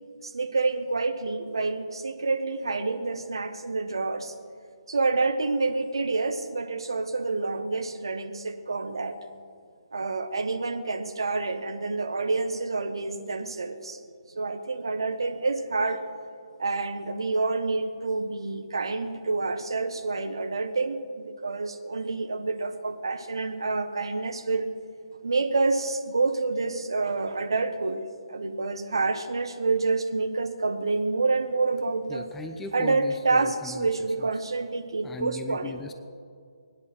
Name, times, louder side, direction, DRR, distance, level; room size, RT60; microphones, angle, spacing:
voice 1, 0.2-4.3 4.9-9.2 9.9-14.0 14.3-16.0 16.6-24.7 25.2-28.0 28.3-32.3 32.7-35.8, right 3 dB, 60° right, 8 dB, 1.4 m, -28 dB
voice 2, 32.1-33.7 35.0-35.9, left 3 dB, 10° left, 7 dB, 0.6 m, -38 dB
22.0 x 9.9 x 6.2 m, 2.2 s
figure-of-eight pair, 135°, 3 cm